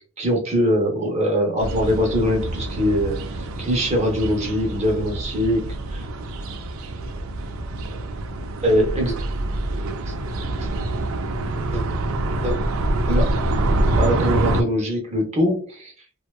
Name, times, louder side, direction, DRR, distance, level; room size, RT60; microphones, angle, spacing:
voice 1, 0.2-6.0 8.6-9.1 10.1-10.2 11.7-11.8 12.4-12.6 13.1-13.3 14.0-15.9, equal, 35° right, 2 dB, 0.6 m, -22 dB
sound 1, 1.6-14.6, right 2 dB, 85° right, 0.4 m, -26 dB
2.6 x 2.2 x 2.3 m, 0.41 s
head